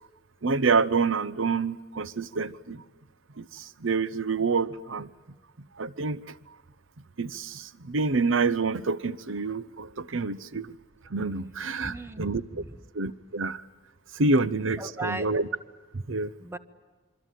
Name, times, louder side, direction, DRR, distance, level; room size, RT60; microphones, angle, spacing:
voice 1, 0.4-2.8 3.4-5.1 5.8-6.4 7.2-10.8 11.1-12.4 12.9-13.6 14.1-15.4 16.1-16.3, right 4 dB, 80° right, 17 dB, 0.9 m, -27 dB
voice 2, 11.8-12.8 14.8-15.3 16.4-16.6, right 2 dB, 15° right, 11 dB, 1.2 m, -37 dB
26.5 x 24.0 x 9.2 m, 1.3 s
head